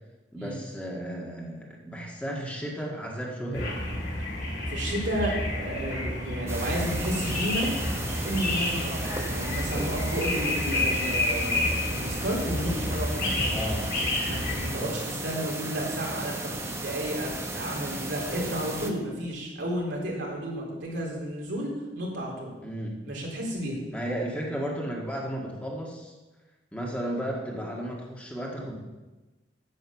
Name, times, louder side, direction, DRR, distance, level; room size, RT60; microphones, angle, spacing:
voice 1, 0.3-3.8 13.5-13.8 14.8-14.9 22.6-22.9 23.9-26.1 26.7-28.8, equal, 10° left, -2 dB, 1.8 m, -34 dB
sound 1, 3.5-14.7, left 1 dB, 60° left, 4.5 m, -30 dB
voice 2, 4.7-7.7 8.2-13.6 14.2-22.5 23.0-23.8, right 1 dB, 75° right, -3 dB, 3.7 m, -32 dB
sound 2, 6.5-18.9, right 1 dB, 15° right, 1.0 m, -35 dB
9.4 x 8.2 x 7.1 m, 1.2 s
head